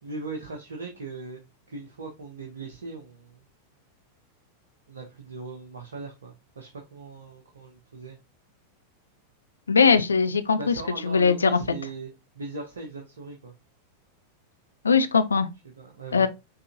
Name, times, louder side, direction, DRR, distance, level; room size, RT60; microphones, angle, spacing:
voice 1, 0.0-1.4 1.7-3.4 4.9-8.2 10.5-13.5 15.6-16.3, right 3 dB, 70° right, 1.1 m, -39 dB
voice 2, 9.7-10.7 11.0-11.4 14.8-15.5 16.1-16.3, left 5 dB, 75° left, 0.6 m, -20 dB
5.5 x 3.7 x 2.6 m
figure-of-eight pair, 90°, 0 cm